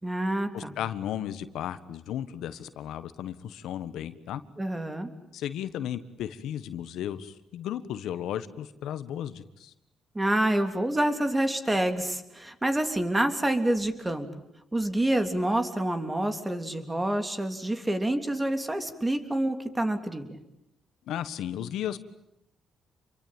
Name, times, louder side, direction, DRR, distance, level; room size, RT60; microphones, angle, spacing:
voice 1, 0.0-0.7 4.6-5.1 10.1-14.3 14.7-20.3, right 1 dB, 15° right, 8 dB, 3.4 m, -27 dB
voice 2, 0.5-4.4 5.3-9.7 21.1-22.0, left 10 dB, 80° left, 12 dB, 1.4 m, -34 dB
28.0 x 23.5 x 9.0 m, 0.82 s
cardioid pair, 90°, 0 cm